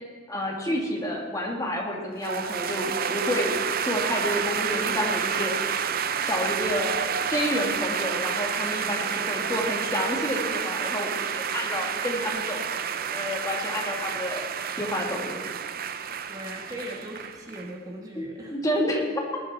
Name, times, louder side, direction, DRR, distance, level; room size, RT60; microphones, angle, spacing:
voice 1, 0.3-5.6 6.3-12.7 13.1-14.4 14.8-15.4 18.2-19.4, left 1 dB, 15° left, -1 dB, 2.3 m, -29 dB
sound 1, 2.2-17.7, right 7 dB, 50° right, 0.6 m, -29 dB
voice 2, 9.1-9.6 16.3-18.6, equal, 20° right, -2 dB, 1.7 m, -39 dB
20.0 x 11.5 x 4.3 m, 1.5 s
head